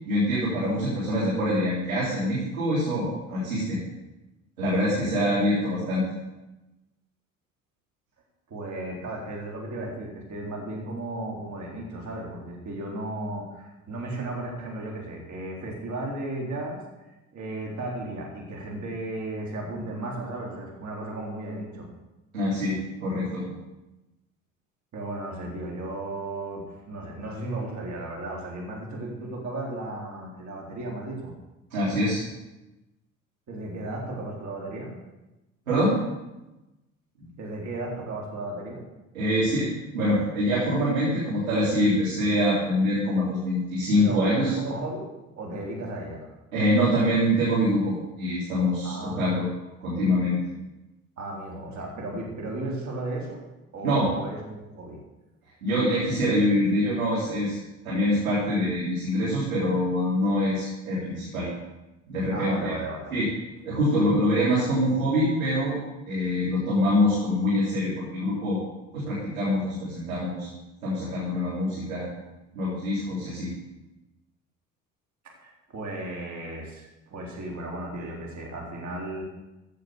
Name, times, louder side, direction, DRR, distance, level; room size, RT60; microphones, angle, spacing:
voice 1, 0.0-3.8 4.6-6.1 22.3-23.4 31.7-32.2 35.7-35.9 37.2-37.3 39.1-44.5 46.5-49.5 49.8-50.4 53.8-54.1 55.6-57.6 57.8-61.5 62.1-62.7 63.1-63.3 63.6-65.8 66.1-68.6 68.9-70.5 70.8-72.1 72.5-73.5, equal, 80° right, -8 dB, 3.8 m, -25 dB
voice 2, 8.5-17.1 17.3-21.9 24.9-31.3 33.5-35.0 37.4-38.8 44.0-46.3 48.8-49.4 51.2-53.4 53.7-55.0 62.3-63.1 75.2-79.2, right 2 dB, 45° right, -1 dB, 4.0 m, -35 dB
15.0 x 6.7 x 7.0 m, 1.0 s
figure-of-eight pair, 55°, 41 cm